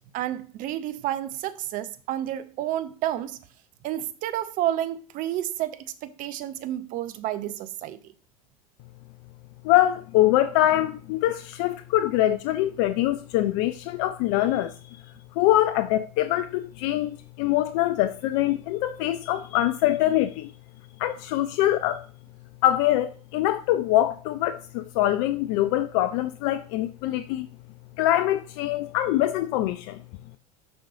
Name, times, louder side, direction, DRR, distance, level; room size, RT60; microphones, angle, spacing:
voice 1, 0.1-3.4 3.8-8.0, right 12 dB, 45° right, 0.6 m, -30 dB
voice 2, 9.6-14.8 15.4-20.5 21.0-22.0 22.6-27.5 28.0-30.0, left 14 dB, 55° left, 0.4 m, -24 dB
6.8 x 5.3 x 2.6 m
figure-of-eight pair, 75°, 19 cm